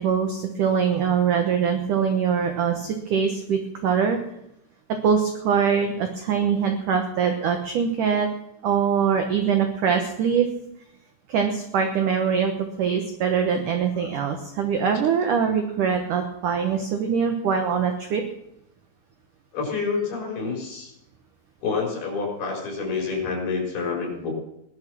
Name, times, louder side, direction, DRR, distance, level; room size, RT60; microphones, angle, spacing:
voice 1, 0.0-4.2 4.9-8.3 8.6-10.5 11.3-12.5 12.8-18.2, right 7 dB, 70° right, 5 dB, 2.0 m, -23 dB
voice 2, 19.5-20.9 21.6-24.3, left 4 dB, 55° left, 0 dB, 6.0 m, -28 dB
18.5 x 11.5 x 6.2 m, 0.82 s
omnidirectional pair, 5.3 m